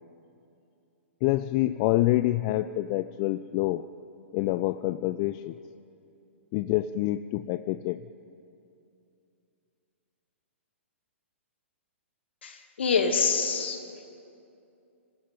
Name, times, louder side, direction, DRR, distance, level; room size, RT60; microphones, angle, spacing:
voice 1, 1.2-3.9 4.3-5.6 6.5-8.1, left 16 dB, 30° left, 15 dB, 0.5 m, -27 dB
voice 2, 12.4-13.8, left 5 dB, 60° left, 5 dB, 2.6 m, -26 dB
25.0 x 16.5 x 9.3 m, 2.7 s
figure-of-eight pair, 115°, 7 cm